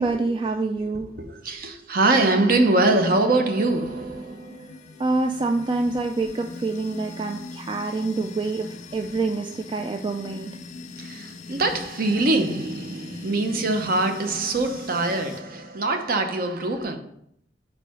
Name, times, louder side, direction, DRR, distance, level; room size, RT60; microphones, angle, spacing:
voice 1, 0.0-1.1 5.0-10.5, right 3 dB, 25° right, 0.3 m, -26 dB
voice 2, 1.2-4.8 11.0-17.0, right 2 dB, 50° right, 0.8 m, -23 dB
sound 1, 3.5-15.4, left 3 dB, 40° left, 0.4 m, -41 dB
4.9 x 4.6 x 4.9 m
head